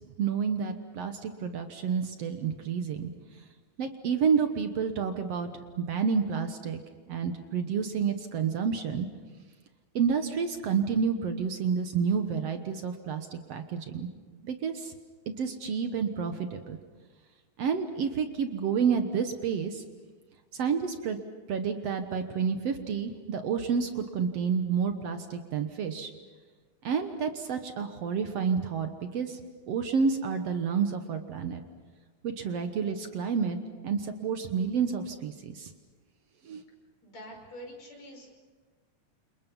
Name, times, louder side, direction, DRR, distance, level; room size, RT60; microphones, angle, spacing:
voice 1, 0.2-3.1 3.8-5.5 5.8-6.8 7.1-9.1 10.0-14.1 14.4-14.9 15.4-16.8 17.6-19.8 20.5-21.2 21.5-26.1 26.8-29.4 29.7-31.6 32.2-33.6 33.8-35.7 36.5-36.6, right 6 dB, 60° right, 7 dB, 2.1 m, -29 dB
voice 2, 37.0-38.4, equal, 60° left, 1 dB, 6.6 m, -46 dB
29.5 x 28.0 x 5.5 m, 1.4 s
omnidirectional pair, 3.4 m